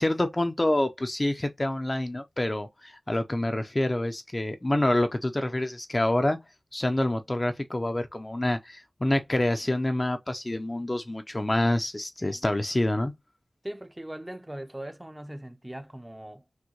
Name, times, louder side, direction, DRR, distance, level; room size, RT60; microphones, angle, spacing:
voice 1, 0.0-6.4 6.7-13.1, left 1 dB, 30° left, 0.5 m, -27 dB
voice 2, 12.2-12.5 13.6-16.4, right 1 dB, 15° right, 0.6 m, -40 dB
6.2 x 2.2 x 3.0 m
wide cardioid pair, 75°, 0 cm